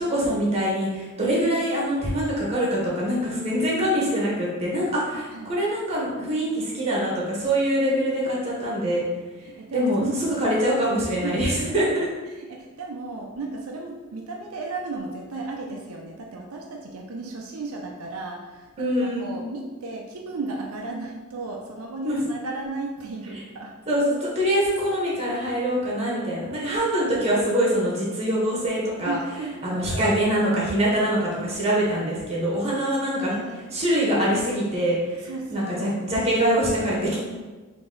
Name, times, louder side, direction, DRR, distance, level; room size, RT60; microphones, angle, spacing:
voice 1, 0.0-9.0 9.7-11.9 18.8-19.4 22.0-22.2 23.9-29.2 29.6-33.4 33.7-37.2, equal, 30° right, -5 dB, 1.2 m, -24 dB
voice 2, 9.4-10.5 11.2-11.8 12.3-23.7 29.0-30.1 32.8-33.6 35.2-36.0, right 3 dB, 85° right, 0 dB, 0.5 m, -35 dB
4.0 x 2.9 x 3.8 m, 1.3 s
head